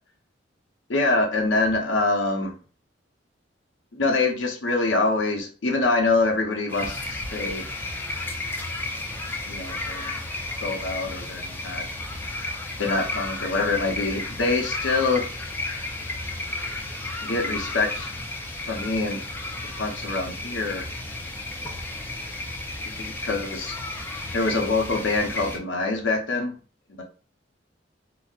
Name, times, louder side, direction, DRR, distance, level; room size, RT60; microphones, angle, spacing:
voice 1, 0.9-2.5 3.9-7.6 9.5-10.2 10.6-11.8 12.8-15.3 17.2-18.1 18.7-19.2 19.8-20.9 22.9-23.7 24.3-26.5 27.0-27.1, left 3 dB, 90° left, 3 dB, 0.7 m, -25 dB
sound 1, 6.7-25.6, left 2 dB, 10° left, 0.4 m, -33 dB
4.0 x 2.0 x 2.4 m, 0.38 s
head